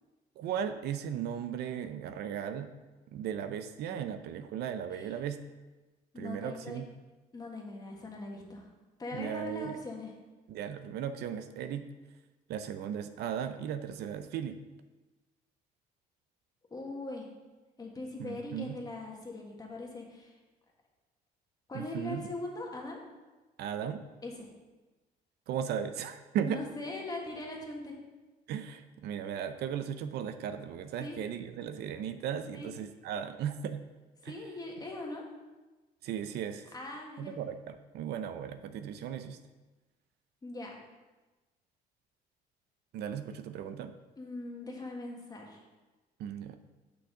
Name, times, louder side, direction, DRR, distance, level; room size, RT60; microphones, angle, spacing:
voice 1, 0.4-2.7 3.1-5.4 6.2-6.9 9.1-9.8 10.5-11.9 12.5-14.6 18.2-18.8 21.7-22.3 23.6-24.1 25.5-26.6 28.5-33.8 34.2-34.3 36.0-36.7 37.2-39.4 42.9-43.9 46.2-46.6, right 8 dB, 75° right, 10 dB, 0.6 m, -36 dB
voice 2, 6.1-6.8 7.3-8.7 9.0-10.1 16.7-17.3 17.8-20.4 21.7-23.0 24.2-24.5 26.4-28.0 31.0-31.2 32.5-32.7 34.2-35.2 36.7-37.3 40.4-40.8 44.2-45.6, left 2 dB, 20° left, 0 dB, 1.6 m, -41 dB
6.2 x 5.9 x 4.9 m, 1.2 s
cardioid pair, 110°, 17 cm